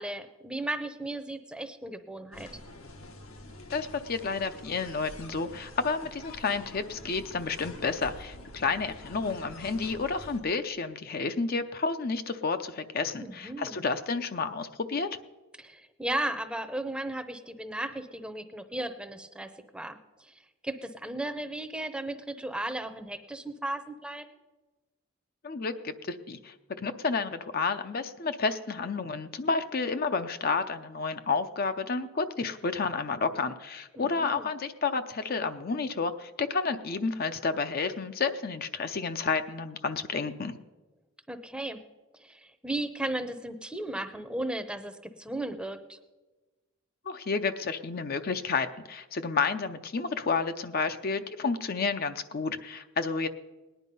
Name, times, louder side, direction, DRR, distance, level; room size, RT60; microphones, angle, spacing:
voice 1, 0.0-2.5 13.2-13.8 15.6-20.3 20.6-24.3 34.0-34.5 41.3-41.8 42.2-46.0, right 1 dB, 5° right, 9 dB, 0.7 m, -35 dB
sound 1, 2.3-10.4, left 1 dB, 80° left, 1.5 m, -46 dB
voice 2, 3.7-15.1 25.4-40.5 47.1-53.3, left 4 dB, 45° left, 9 dB, 0.6 m, -30 dB
18.5 x 10.0 x 5.4 m, 1.2 s
head